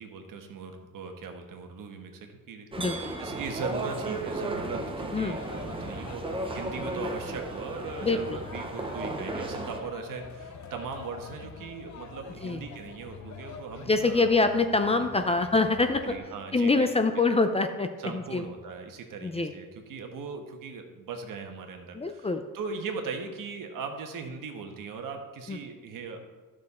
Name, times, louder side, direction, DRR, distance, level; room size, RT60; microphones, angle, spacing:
voice 1, 0.0-2.9 3.2-14.3 14.7-15.4 16.0-17.2 18.0-22.3 22.5-26.2, right 5 dB, 75° right, 4 dB, 1.3 m, -39 dB
sound 1, 2.7-9.8, right 2 dB, 15° right, 0.8 m, -35 dB
voice 2, 2.8-3.1 5.1-5.4 8.0-8.4 12.4-12.6 13.9-16.0 16.5-17.9 18.1-18.4 19.2-19.5 21.9-22.4 25.5-25.6, left 3 dB, 20° left, 7 dB, 0.4 m, -25 dB
sound 2, 4.6-16.2, left 5 dB, 55° left, 1.0 m, -45 dB
12.5 x 6.4 x 4.2 m, 1.4 s
cardioid pair, 160°, 33 cm